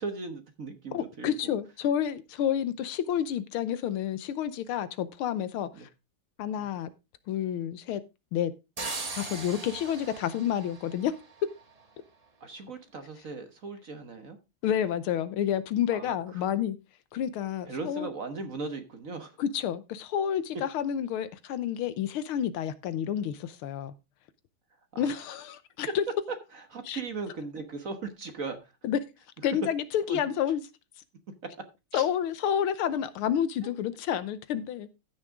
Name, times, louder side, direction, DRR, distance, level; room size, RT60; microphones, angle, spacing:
voice 1, 0.0-1.5 5.8-5.9 6.6-6.7 12.4-14.4 15.9-16.1 17.7-19.3 24.9-25.2 26.5-28.6 30.1-30.2 31.9-32.1, right 4 dB, 45° right, 1.3 m, -38 dB
voice 2, 0.9-5.7 6.4-6.9 7.3-8.0 8.3-8.5 9.1-11.1 14.6-16.8 17.1-18.1 19.4-23.9 25.0-26.0 26.8-27.0 28.8-29.0 29.4-30.6 31.9-34.9, left 9 dB, 80° left, 1.7 m, -29 dB
sound 1, 8.8-11.6, right 3 dB, 25° right, 0.9 m, -39 dB
14.5 x 6.4 x 3.6 m
omnidirectional pair, 2.4 m